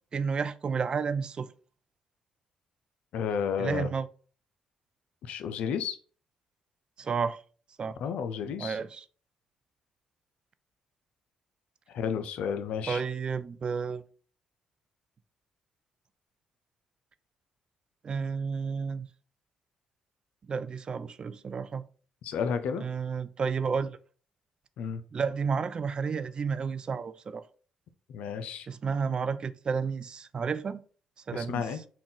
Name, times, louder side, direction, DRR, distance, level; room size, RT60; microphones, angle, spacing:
voice 1, 0.1-1.5 3.6-4.1 7.0-7.4 7.8-8.0 8.6-9.1 12.9-14.0 18.0-19.1 20.5-21.8 22.8-24.0 25.1-27.4 28.7-30.8 31.3-31.7, right 5 dB, 45° right, 0.3 m, -31 dB
voice 2, 3.1-3.9 5.2-6.0 8.0-8.8 11.9-13.0 22.2-22.8 24.8-25.0 28.1-28.7 31.3-31.8, left 7 dB, 75° left, 0.4 m, -32 dB
3.7 x 2.3 x 3.7 m
supercardioid pair, 55°, 2 cm